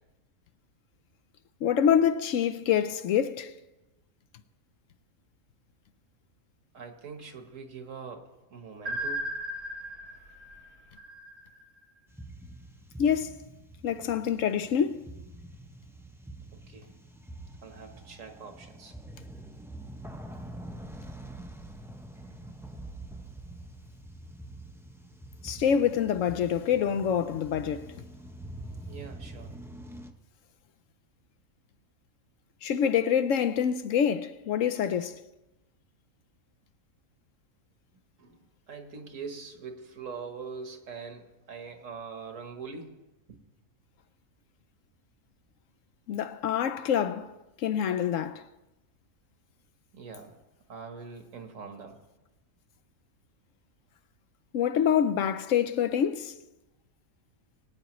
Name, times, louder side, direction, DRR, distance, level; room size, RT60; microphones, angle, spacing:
voice 1, 1.6-3.5 13.0-13.4 13.8-15.0 25.4-27.9 32.6-35.2 46.1-48.4 54.5-56.3, left 8 dB, 70° left, 0.9 m, -26 dB
voice 2, 6.7-9.3 16.7-16.9 17.6-18.9 28.8-29.5 38.2-43.0 43.3-43.4 49.9-50.4 50.7-52.0, right 5 dB, 65° right, 1.6 m, -43 dB
sound 1, 8.9-11.8, right 1 dB, 85° right, 2.3 m, -36 dB
sound 2, 12.1-30.1, right 1 dB, 5° right, 0.4 m, -45 dB
22.5 x 9.2 x 3.0 m
omnidirectional pair, 1.5 m